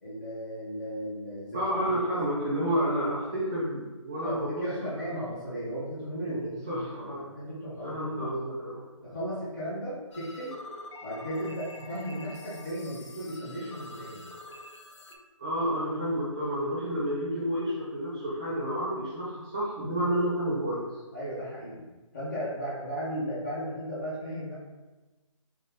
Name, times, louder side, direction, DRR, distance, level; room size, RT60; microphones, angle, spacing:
voice 1, 0.0-1.6 1.9-2.0 4.2-8.3 9.0-10.6 11.0-14.3 21.1-21.8 22.1-24.5, equal, 30° left, -11 dB, 1.0 m, -35 dB
voice 2, 1.5-4.6 5.0-5.1 6.7-7.3 7.8-8.8 15.4-20.9, equal, 10° right, -8 dB, 0.5 m, -30 dB
sound 1, 10.1-15.2, left 2 dB, 60° left, 0.5 m, -46 dB
3.5 x 2.8 x 3.4 m, 1.1 s
hypercardioid pair, 170°, 17 cm